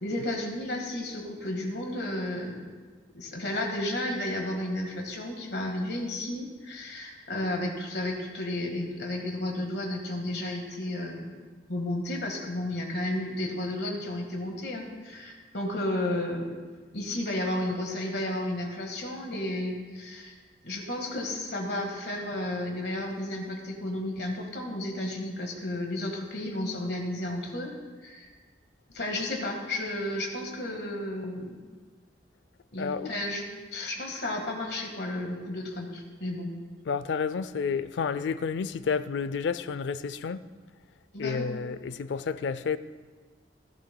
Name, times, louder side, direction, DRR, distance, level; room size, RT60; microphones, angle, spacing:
voice 1, 0.0-2.7 3.1-11.3 11.7-16.5 16.9-20.3 20.6-27.7 28.0-28.3 28.9-31.6 32.7-33.5 33.7-36.5 41.1-41.5, left 1 dB, 60° left, 1.6 m, -32 dB
voice 2, 32.8-33.1 36.9-40.5 41.2-42.8, left 5 dB, 80° left, 0.4 m, -30 dB
16.0 x 11.0 x 2.2 m
head